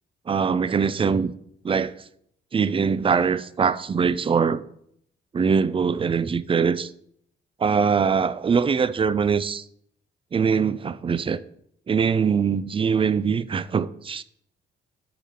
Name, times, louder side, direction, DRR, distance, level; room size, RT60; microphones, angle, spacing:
voice 1, 0.3-1.3 1.6-1.9 2.5-4.6 5.3-6.9 7.6-9.6 10.3-11.4 11.9-14.2, right 6 dB, 25° right, 0.4 m, -22 dB
6.7 x 4.9 x 5.7 m
cardioid pair, 90°, 20 cm